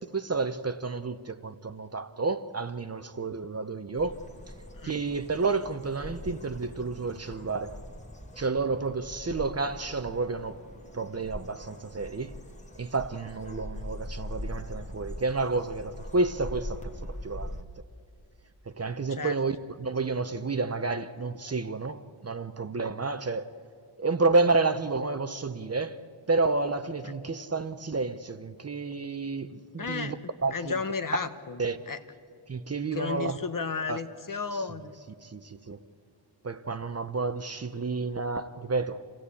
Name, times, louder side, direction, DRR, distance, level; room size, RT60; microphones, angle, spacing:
voice 1, 0.1-4.2 4.8-7.8 8.4-10.6 10.9-12.4 12.8-17.6 18.7-23.5 24.0-26.0 26.3-30.1 30.4-30.8 31.6-31.8 32.5-33.4 33.9-34.0 35.2-35.8 36.4-39.0, right 3 dB, 30° right, 0.8 m, -30 dB
sound 1, 3.9-17.6, left 1 dB, 15° left, 1.6 m, -42 dB
voice 2, 29.8-30.1 30.5-32.0 32.9-34.9, left 5 dB, 45° left, 1.1 m, -33 dB
27.0 x 16.5 x 8.4 m
wide cardioid pair, 110°, 47 cm